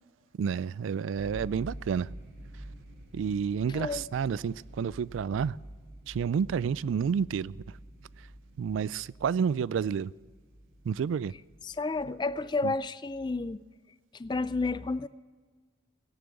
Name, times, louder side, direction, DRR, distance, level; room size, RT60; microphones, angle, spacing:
voice 1, 0.3-2.1 3.1-5.6 6.1-7.6 8.6-10.1 10.8-11.3 12.6-12.7, right 7 dB, 85° right, 0.3 m, -30 dB
sound 1, 1.2-12.1, right 1 dB, 60° right, 4.4 m, -48 dB
voice 2, 3.7-4.0 11.6-13.6 14.1-15.1, left 3 dB, 25° left, 0.3 m, -31 dB
17.0 x 7.0 x 7.7 m
head